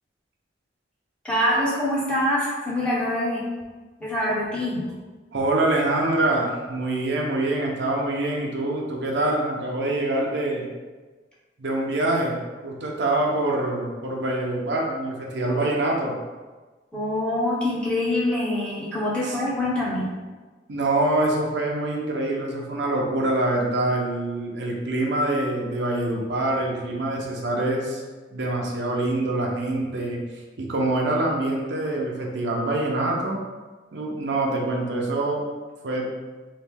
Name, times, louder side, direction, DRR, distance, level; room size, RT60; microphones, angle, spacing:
voice 1, 1.2-3.4 4.0-4.8 16.9-20.1, left 1 dB, 5° left, -6 dB, 0.7 m, -25 dB
voice 2, 5.3-10.7 11.6-12.4 12.6-16.1 19.3-19.4 20.7-28.0 28.3-30.2 30.6-33.4 33.9-35.4 35.8-36.1, right 2 dB, 70° right, -1 dB, 0.6 m, -25 dB
3.1 x 2.6 x 3.4 m, 1.3 s
head